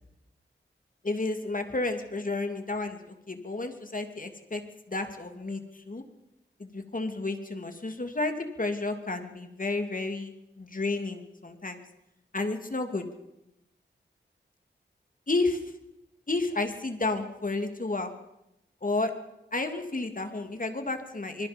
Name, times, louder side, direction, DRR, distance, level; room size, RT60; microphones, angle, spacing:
voice 1, 1.0-4.6 4.9-5.6 5.9-6.0 6.6-11.8 12.3-13.1 15.3-15.6 16.3-18.1 18.8-19.1 19.5-21.5, left 2 dB, 45° left, 6 dB, 2.8 m, -31 dB
26.0 x 21.0 x 5.3 m, 0.87 s
wide cardioid pair, 55°, 19 cm